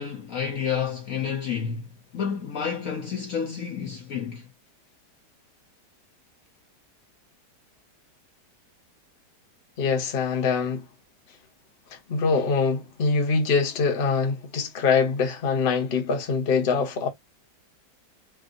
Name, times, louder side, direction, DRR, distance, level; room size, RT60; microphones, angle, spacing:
voice 1, 0.0-4.5, left 7 dB, 60° left, 1.0 m, -30 dB
voice 2, 9.8-10.8 12.1-17.1, left 5 dB, 45° left, 0.9 m, -24 dB
3.5 x 2.6 x 2.5 m
omnidirectional pair, 1.9 m